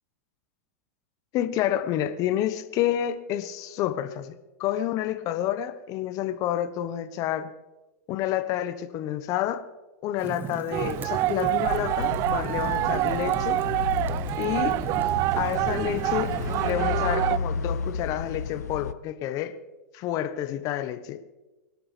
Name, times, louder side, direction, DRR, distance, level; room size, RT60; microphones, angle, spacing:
voice 1, 1.3-4.3 4.6-7.5 8.1-9.6 10.0-13.6 14.4-14.8 15.4-16.4 16.6-19.5 19.9-21.2, left 11 dB, 40° left, 11 dB, 1.1 m, -29 dB
Fire, 10.2-16.7, right 6 dB, 20° right, 0.8 m, -39 dB
sound 1, 10.7-17.4, right 17 dB, 40° right, 0.3 m, -27 dB
sound 2, 11.6-18.9, left 6 dB, 90° left, 0.5 m, -33 dB
24.5 x 11.0 x 3.4 m, 1.1 s
hypercardioid pair, 110°, 9 cm